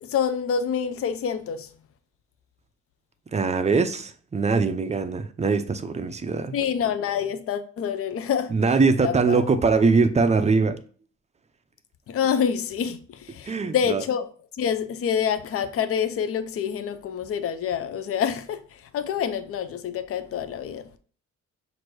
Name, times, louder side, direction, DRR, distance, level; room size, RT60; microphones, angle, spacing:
voice 1, 0.0-1.7 6.5-8.5 9.0-9.5 12.1-14.3 14.5-21.0, left 8 dB, 50° left, 0.5 m, -27 dB
voice 2, 3.3-6.5 8.5-10.8 13.4-14.0, right 4 dB, 25° right, 0.4 m, -22 dB
5.9 x 2.6 x 3.1 m
cardioid pair, 90°, 30 cm